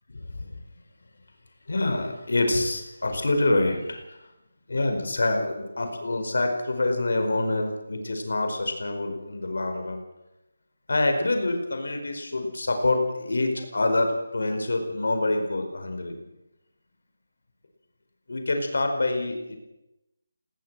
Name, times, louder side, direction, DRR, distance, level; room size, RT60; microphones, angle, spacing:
voice 1, 0.1-0.6 1.7-4.3 4.7-10.0 10.9-16.2 18.3-19.6, left 2 dB, 65° left, 5 dB, 4.9 m, -26 dB
19.5 x 18.0 x 7.7 m, 0.93 s
figure-of-eight pair, 180°, 0 cm